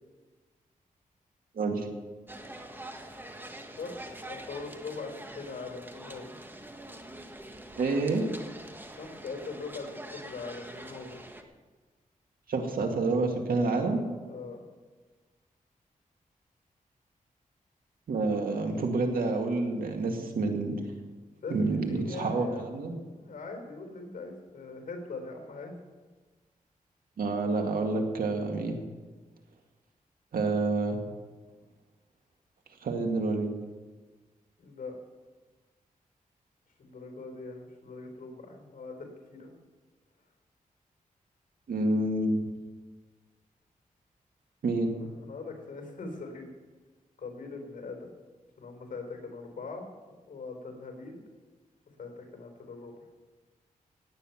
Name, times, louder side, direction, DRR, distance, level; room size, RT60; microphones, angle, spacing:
voice 1, 1.5-1.9 7.8-8.3 12.5-14.0 18.1-20.7 21.5-22.9 27.2-28.8 30.3-31.0 32.8-33.5 41.7-42.4 44.6-44.9, right 3 dB, 85° right, 3 dB, 2.1 m, -28 dB
sound 1, 2.3-11.4, right 1 dB, 15° right, 1.5 m, -45 dB
voice 2, 3.8-6.3 9.0-11.2 14.2-14.6 21.4-25.7 34.6-35.0 36.8-39.5 44.9-46.5 47.2-48.1 48.6-49.9 50.3-51.2 52.0-52.9, left 3 dB, 70° left, 3 dB, 4.2 m, -41 dB
17.0 x 9.4 x 5.9 m, 1.3 s
cardioid pair, 85°, 14 cm